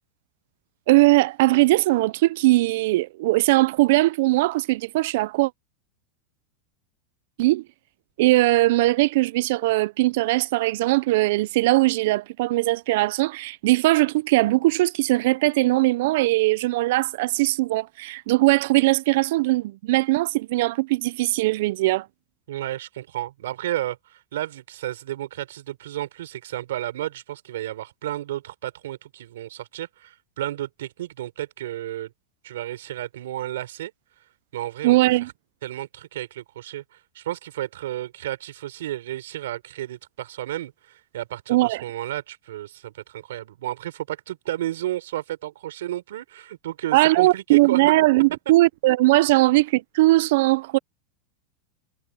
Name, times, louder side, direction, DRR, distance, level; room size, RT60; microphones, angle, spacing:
voice 1, 0.9-5.5 7.4-7.6 8.2-22.1 34.8-35.3 41.5-41.8 46.9-50.8, right 19 dB, 65° right, 0.5 m, -20 dB
voice 2, 22.5-32.1 32.4-33.9 34.5-35.3 35.6-47.8, right 13 dB, 85° right, 4.7 m, -32 dB
supercardioid pair, 150°, 0 cm